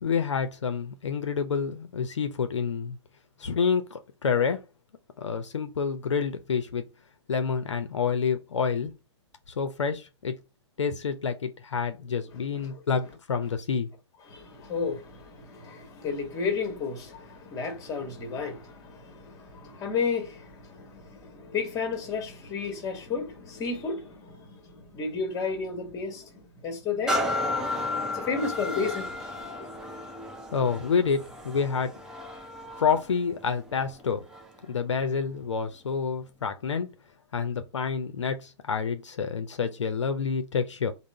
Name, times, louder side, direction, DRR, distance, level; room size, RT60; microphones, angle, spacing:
voice 1, 0.0-3.0 3.4-4.6 5.2-6.8 7.3-8.9 9.5-10.3 10.8-13.9 30.5-31.9 32.7-34.2 34.7-36.9 37.3-40.9, left 6 dB, 75° left, 0.5 m, -28 dB
voice 2, 12.3-12.8 14.3-27.2 28.1-29.3, left 5 dB, 20° left, 1.1 m, -33 dB
sound 1, 27.1-34.7 35.2-35.4, left 2 dB, 5° right, 0.5 m, -33 dB
3.6 x 2.1 x 4.1 m
figure-of-eight pair, 120°, 15 cm